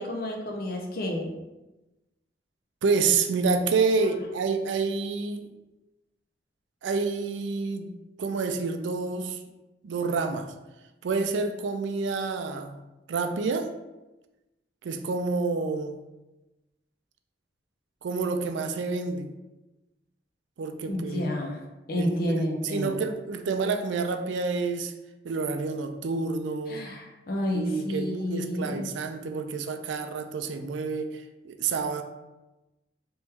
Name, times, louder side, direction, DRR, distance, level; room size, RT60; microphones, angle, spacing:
voice 1, 0.0-1.3 20.9-21.6 21.9-23.0 26.7-28.9, left 1 dB, 55° left, 1 dB, 0.6 m, -30 dB
voice 2, 2.8-5.5 6.8-7.9 8.2-9.4 9.8-10.5 11.0-12.8 13.1-13.7 14.8-16.0 18.0-19.3 20.6-21.2 22.0-24.9 25.2-26.8 27.5-32.0, right 4 dB, 80° right, 7 dB, 0.4 m, -28 dB
3.1 x 3.0 x 3.4 m, 1.0 s
head